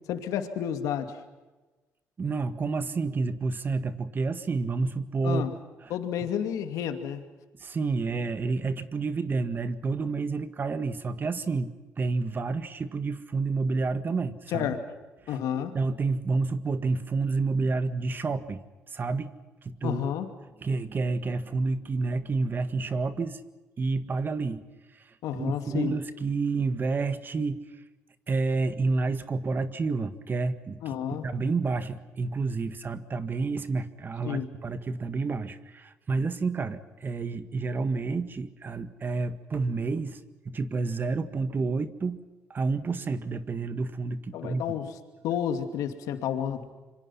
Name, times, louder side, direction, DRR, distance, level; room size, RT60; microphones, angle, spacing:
voice 1, 0.1-1.2 5.2-5.5 5.9-7.2 14.5-14.8 15.3-15.8 19.8-20.3 25.2-25.9 30.8-31.3 34.2-34.5 44.3-44.9 45.2-46.7, left 9 dB, 80° left, 7 dB, 2.5 m, -30 dB
voice 2, 2.2-5.5 5.8-5.9 7.6-14.7 15.3-18.6 18.9-19.3 19.6-20.1 20.6-23.4 23.8-24.6 24.9-27.6 28.3-31.0 31.2-40.2 40.5-42.2 42.5-44.7, right 4 dB, 35° right, 11 dB, 1.8 m, -29 dB
26.5 x 25.0 x 5.8 m, 1.2 s
cardioid pair, 90°, 6 cm